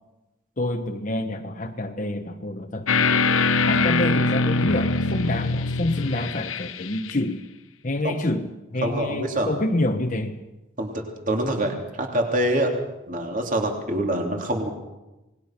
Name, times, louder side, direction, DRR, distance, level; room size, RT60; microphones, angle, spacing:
voice 1, 0.6-3.2 3.7-7.4 7.8-10.4, left 1 dB, 35° left, 4 dB, 1.0 m, -27 dB
sound 1, 2.9-7.1, left 3 dB, 75° left, 1.0 m, -23 dB
voice 2, 8.8-9.5 10.8-12.7 13.1-14.7, right 1 dB, 40° right, 2 dB, 3.0 m, -25 dB
27.5 x 20.0 x 6.0 m, 1.0 s
head